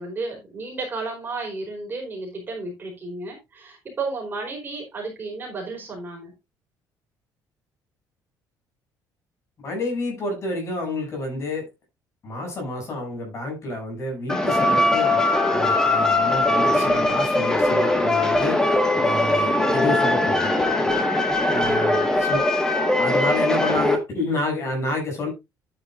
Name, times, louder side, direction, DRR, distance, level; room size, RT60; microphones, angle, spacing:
voice 1, 0.0-6.3 21.9-22.0, right 3 dB, 25° right, 4.6 m, -32 dB
voice 2, 9.6-11.7 12.2-20.6 21.5-22.4 23.0-25.3, left 2 dB, 40° left, 7.3 m, -29 dB
sound 1, 14.3-24.0, left 2 dB, 10° left, 1.6 m, -20 dB
11.0 x 9.5 x 2.6 m
cardioid pair, 155°, 8 cm